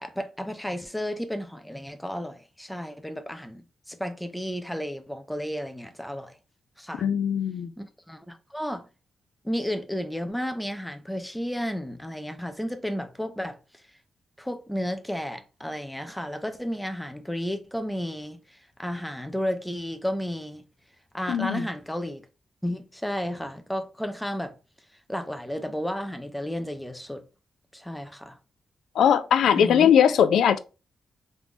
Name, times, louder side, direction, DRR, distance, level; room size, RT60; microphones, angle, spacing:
voice 1, 0.0-6.4 6.8-7.0 7.8-8.9 9.4-13.6 14.4-20.6 21.1-22.3 22.6-24.5 25.1-27.2 27.7-28.4 29.6-29.9, equal, 5° left, 0.4 m, -32 dB
voice 2, 7.0-7.7 21.3-21.6 29.0-30.6, left 8 dB, 90° left, 0.3 m, -20 dB
3.5 x 2.5 x 3.0 m
wide cardioid pair, 165°, 0 cm